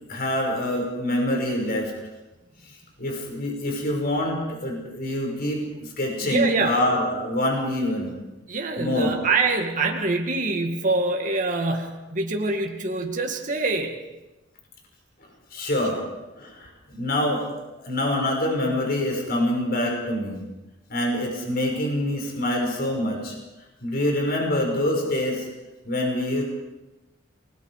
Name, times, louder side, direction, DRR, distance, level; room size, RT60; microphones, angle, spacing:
voice 1, 0.1-1.9 3.0-8.1 8.8-9.1 15.5-16.0 16.4-17.6 17.8-20.4 20.9-23.4 23.8-25.5 25.8-26.4, left 1 dB, 50° left, 0 dB, 5.8 m, -25 dB
voice 2, 6.2-6.8 8.5-14.0, right 3 dB, 40° right, 2 dB, 2.2 m, -25 dB
29.0 x 20.5 x 4.9 m, 1.0 s
head